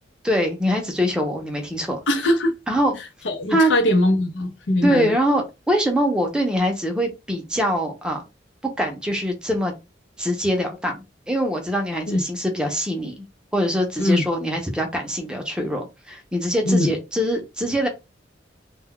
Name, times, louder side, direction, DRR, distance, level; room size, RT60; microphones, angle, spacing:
voice 1, 0.2-2.0 2.7-3.0 3.5-3.7 4.8-8.2 8.8-9.7 10.2-11.0 11.3-13.2 13.5-17.9, equal, 5° right, 0.5 m, -23 dB
voice 2, 2.1-2.5 3.2-5.1 12.1-12.2 14.0-14.2 16.7-16.9, left 1 dB, 90° left, 0.6 m, -21 dB
2.2 x 2.2 x 3.6 m
head